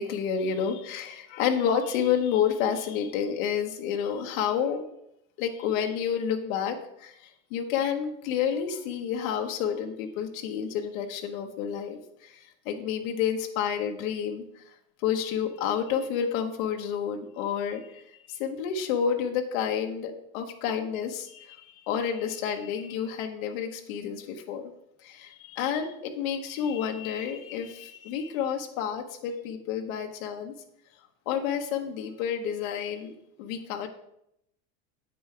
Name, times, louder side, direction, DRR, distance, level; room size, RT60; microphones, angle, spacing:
voice 1, 0.0-4.8 5.4-14.6 15.0-24.7 25.0-30.5 31.3-33.1 33.4-33.9, left 8 dB, 80° left, 4 dB, 1.0 m, -30 dB
8.6 x 5.4 x 4.5 m, 0.77 s
cardioid pair, 150°, 40 cm